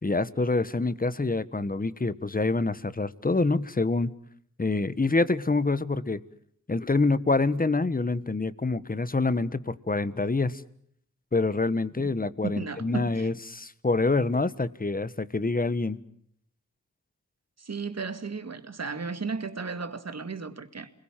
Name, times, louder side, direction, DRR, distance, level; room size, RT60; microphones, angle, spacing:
voice 1, 0.0-4.1 4.6-6.2 6.7-10.6 11.3-16.0, left 3 dB, 25° left, 1.4 m, -26 dB
voice 2, 12.4-13.3 17.6-20.9, right 4 dB, 55° right, 2.3 m, -34 dB
29.0 x 21.0 x 7.5 m
cardioid pair, 55°, 32 cm